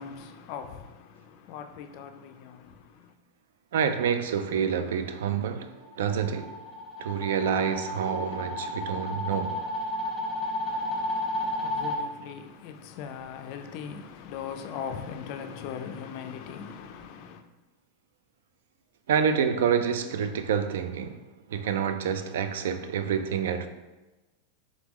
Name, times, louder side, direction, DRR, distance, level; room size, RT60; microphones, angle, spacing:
voice 1, 0.0-3.1 10.6-17.4, left 7 dB, 40° left, 0.3 m, -40 dB
voice 2, 3.7-6.6 7.0-9.6 19.1-21.2 21.5-23.7, right 7 dB, 80° right, 0.3 m, -28 dB
sound 1, 5.8-12.0, left 1 dB, ahead, 0.8 m, -32 dB
3.6 x 3.6 x 3.0 m
supercardioid pair, 175°, 0 cm